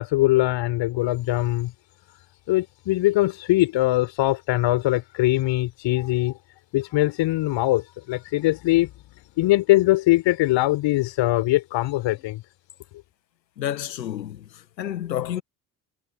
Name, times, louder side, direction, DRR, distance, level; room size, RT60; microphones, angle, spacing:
voice 1, 0.0-1.7 2.5-6.4 6.7-8.9 9.4-12.4, left 17 dB, 60° left, 4.4 m, -22 dB
voice 2, 13.6-15.4, left 11 dB, 80° left, 1.9 m, -30 dB
figure-of-eight pair, 50°, 50 cm